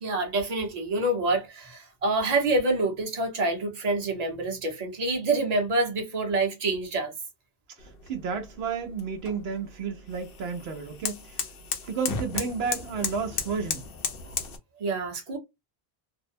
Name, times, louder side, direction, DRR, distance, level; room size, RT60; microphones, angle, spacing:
voice 1, 0.0-7.1 14.8-15.4, right 2 dB, 40° right, 0.9 m, -27 dB
sound 1, 7.8-14.6, left 5 dB, 65° left, 0.8 m, -35 dB
voice 2, 7.8-11.4 11.9-13.8, right 5 dB, 80° right, 0.9 m, -32 dB
2.6 x 2.0 x 2.5 m
omnidirectional pair, 1.0 m